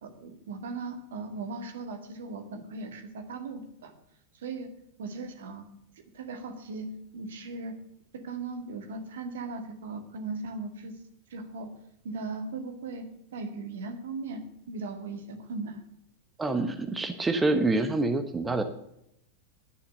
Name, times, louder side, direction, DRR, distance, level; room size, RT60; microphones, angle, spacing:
voice 1, 0.0-3.9 4.3-4.7 5.0-5.6 6.1-7.8 8.1-11.0 11.3-11.7 12.0-13.1 13.3-15.8, right 3 dB, 60° right, 7 dB, 2.0 m, -38 dB
voice 2, 16.4-18.6, right 2 dB, 10° right, 7 dB, 1.1 m, -26 dB
11.0 x 9.9 x 6.8 m, 0.77 s
figure-of-eight pair, 90°, 0 cm